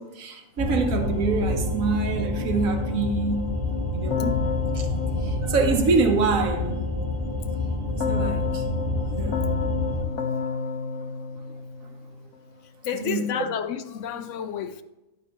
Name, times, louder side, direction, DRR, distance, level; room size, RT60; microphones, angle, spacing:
voice 1, 0.0-3.6 3.9-4.4 4.7-6.8 8.1-8.6 9.2-9.5 11.5-11.6 12.9-13.5, right 4 dB, 80° right, 1.5 m, -26 dB
sound 1, 0.6-10.0, left 2 dB, 35° right, 1.6 m, -28 dB
Keyboard (musical), 4.1-6.4 8.0-12.3, left 5 dB, 90° left, 1.4 m, -30 dB
voice 2, 12.8-14.8, left 8 dB, 70° left, 0.9 m, -30 dB
11.0 x 8.6 x 3.0 m
omnidirectional pair, 1.4 m